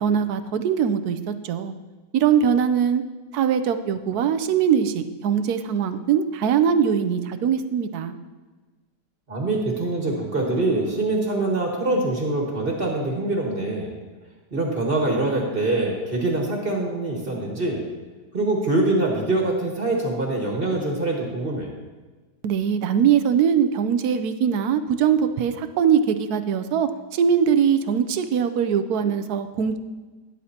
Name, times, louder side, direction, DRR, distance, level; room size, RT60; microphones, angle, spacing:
voice 1, 0.0-1.7 2.1-3.0 3.3-8.2 22.4-29.8, right 7 dB, 70° right, 10 dB, 1.1 m, -21 dB
voice 2, 9.3-13.9 14.5-17.8 18.3-21.7, right 2 dB, 35° right, -1 dB, 1.8 m, -24 dB
12.5 x 11.0 x 2.9 m, 1.3 s
omnidirectional pair, 1.8 m